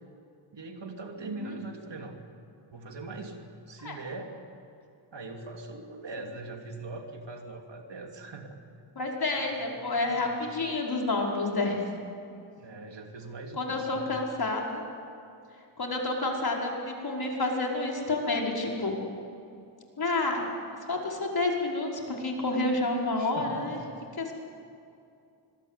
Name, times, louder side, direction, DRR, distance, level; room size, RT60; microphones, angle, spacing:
voice 1, 0.5-2.2 2.7-4.3 5.1-8.5 9.9-10.3 12.6-14.1 23.2-23.8, right 3 dB, 65° right, 3 dB, 3.1 m, -41 dB
voice 2, 8.9-11.8 13.6-14.8 15.8-18.9 20.0-20.5 20.9-23.8 24.2-24.3, left 2 dB, 50° left, -1 dB, 5.0 m, -29 dB
25.5 x 22.0 x 8.3 m, 2.5 s
wide cardioid pair, 90°, 47 cm